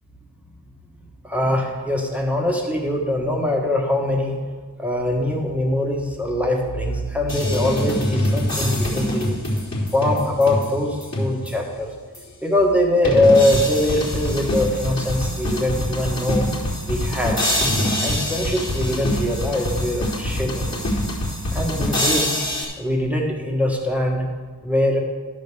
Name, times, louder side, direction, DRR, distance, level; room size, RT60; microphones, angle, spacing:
voice 1, 1.2-4.3 4.8-9.3 9.9-11.9 12.4-16.5 16.8-17.4 18.0-20.9 21.5-22.4 22.8-24.2 24.6-25.0, left 1 dB, 5° right, 0 dB, 1.5 m, -22 dB
sound 1, 7.3-11.7 12.1-12.2 13.0-22.6, left 1 dB, 40° left, 3.4 m, -24 dB
11.5 x 5.3 x 6.9 m, 1.5 s
wide cardioid pair, 55°, 41 cm